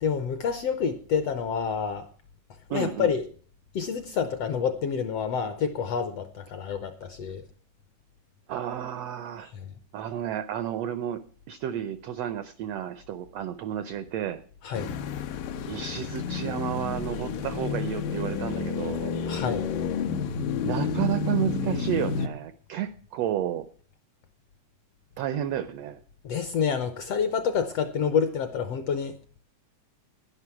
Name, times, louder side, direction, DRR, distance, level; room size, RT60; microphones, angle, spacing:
voice 1, 0.0-2.1 2.7-3.2 3.7-7.4 9.5-9.7 14.6-14.9 19.2-19.7 26.2-29.1, left 6 dB, 75° left, 1.5 m, -28 dB
voice 2, 2.7-3.1 8.5-9.5 9.9-14.4 15.7-19.1 20.6-23.7 25.2-26.0, right 10 dB, 90° right, 1.4 m, -31 dB
sound 1, 14.7-22.3, left 5 dB, 90° left, 2.6 m, -30 dB
11.5 x 10.5 x 5.9 m
omnidirectional pair, 3.7 m